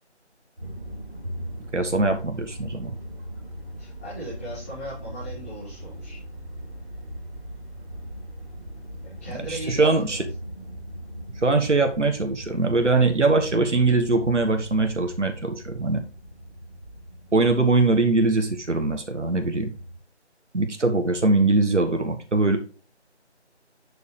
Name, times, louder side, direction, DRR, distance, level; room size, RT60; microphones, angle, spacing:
sound 1, 0.6-20.0, equal, 5° right, 2.9 m, -39 dB
voice 1, 1.7-2.9 9.3-10.2 11.4-16.0 17.3-19.7 20.5-22.6, right 3 dB, 90° right, 5 dB, 1.5 m, -22 dB
voice 2, 3.8-6.2 9.0-10.2, right 1 dB, 10° left, -12 dB, 3.7 m, -37 dB
7.0 x 6.5 x 3.3 m, 0.35 s
figure-of-eight pair, 175°, 35 cm